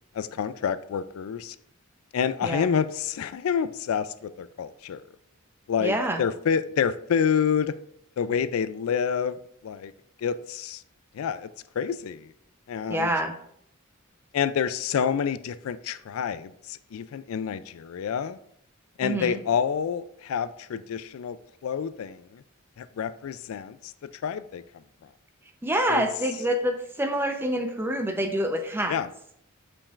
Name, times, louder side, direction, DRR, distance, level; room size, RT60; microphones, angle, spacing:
voice 1, 0.1-1.6 2.1-5.0 5.7-7.8 8.2-9.9 10.2-10.8 11.1-11.5 11.8-12.3 12.7-13.1 14.3-18.4 19.0-21.4 21.6-22.4 22.8-24.6 25.0-25.1 25.9-26.1 28.9-29.1, left 7 dB, 80° left, 0.3 m, -28 dB
voice 2, 5.8-6.2 12.9-13.4 19.0-19.4 25.6-29.0, right 1 dB, 10° right, 0.6 m, -26 dB
8.5 x 5.2 x 2.4 m
head